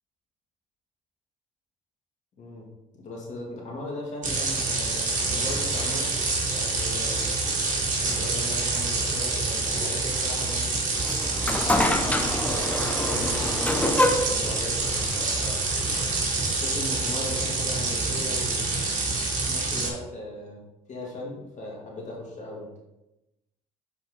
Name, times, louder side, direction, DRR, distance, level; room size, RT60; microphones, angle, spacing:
voice 1, 2.9-6.1 6.5-7.3 8.0-10.7 11.4-15.6 16.5-18.6 19.5-20.6 20.9-22.7, left 1 dB, 50° left, -2 dB, 2.2 m, -38 dB
sound 1, 4.2-19.9, right 3 dB, 50° right, 1.9 m, -27 dB
sound 2, 10.9-16.2, left 1 dB, 10° left, 0.7 m, -27 dB
5.5 x 4.5 x 3.8 m, 0.94 s
hypercardioid pair, 60°, 16 cm